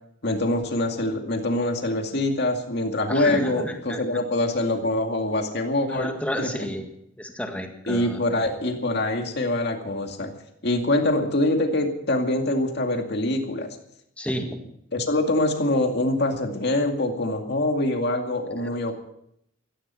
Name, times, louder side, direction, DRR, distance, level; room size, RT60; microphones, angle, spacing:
voice 1, 0.2-6.1 6.4-6.7 7.9-10.3 10.6-13.8 14.9-18.9, left 1 dB, 55° left, 4 dB, 2.3 m, -24 dB
voice 2, 3.1-4.0 5.9-6.9 7.2-8.2 14.2-14.6 18.6-18.7, equal, 5° left, 4 dB, 1.8 m, -31 dB
15.5 x 14.5 x 5.7 m, 0.74 s
head